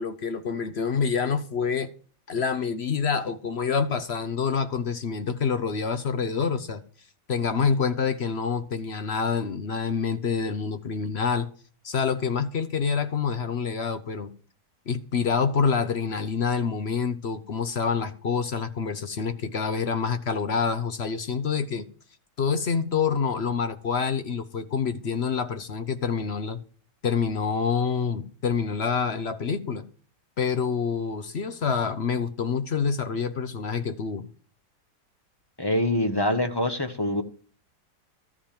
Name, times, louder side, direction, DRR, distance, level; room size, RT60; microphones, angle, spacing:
voice 1, 0.0-1.9 2.3-6.8 7.3-11.5 11.8-14.3 14.9-21.9 22.4-26.6 27.0-29.9 30.4-34.3, left 6 dB, 50° left, 0.8 m, -27 dB
voice 2, 35.6-37.2, left 1 dB, 25° left, 0.5 m, -25 dB
13.0 x 4.9 x 8.8 m
omnidirectional pair, 1.9 m